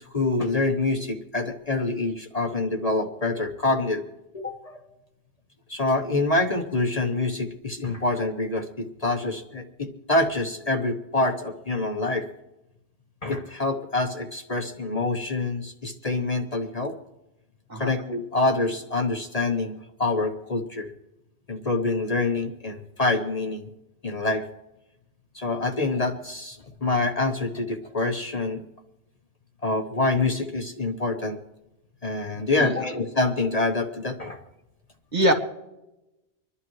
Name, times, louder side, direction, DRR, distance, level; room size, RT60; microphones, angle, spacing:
voice 1, 0.1-4.0 4.3-4.9 5.7-12.3 13.2-17.0 17.7-20.9 21.5-23.7 24.0-24.5 25.3-28.6 29.6-31.4 32.0-34.4, left 2 dB, 35° left, 5 dB, 1.0 m, -26 dB
voice 2, 17.7-17.9 32.6-32.8 35.1-35.3, equal, 40° right, 4 dB, 1.6 m, -23 dB
26.0 x 11.5 x 3.1 m, 0.94 s
omnidirectional pair, 1.1 m